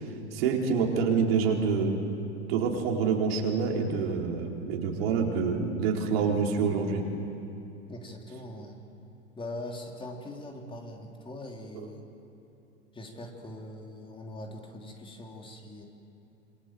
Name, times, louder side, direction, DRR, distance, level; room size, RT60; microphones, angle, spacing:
voice 1, 0.3-2.0 2.5-7.0, right 5 dB, 55° right, 0 dB, 4.3 m, -27 dB
voice 2, 7.9-8.8 9.3-12.1 12.9-15.9, left 1 dB, 15° left, 1 dB, 3.3 m, -42 dB
27.0 x 24.5 x 7.8 m, 2.7 s
figure-of-eight pair, 95°, 36 cm